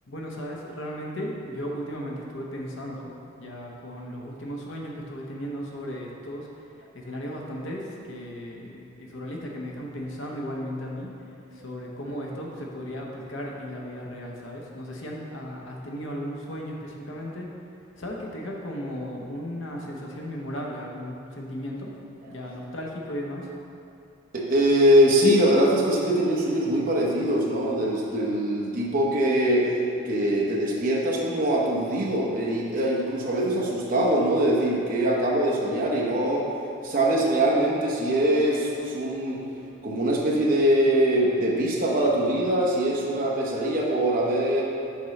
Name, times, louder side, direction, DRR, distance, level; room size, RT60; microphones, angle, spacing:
voice 1, 0.1-3.1 3.4-6.5 6.9-11.1 11.5-17.5 18.0-21.9 22.3-23.5, equal, 65° left, -1 dB, 0.8 m, -35 dB
voice 2, 24.3-29.7 30.0-36.5 36.8-39.4 39.8-44.6, right 1 dB, 40° right, -3 dB, 0.9 m, -23 dB
6.7 x 5.3 x 3.2 m, 2.6 s
head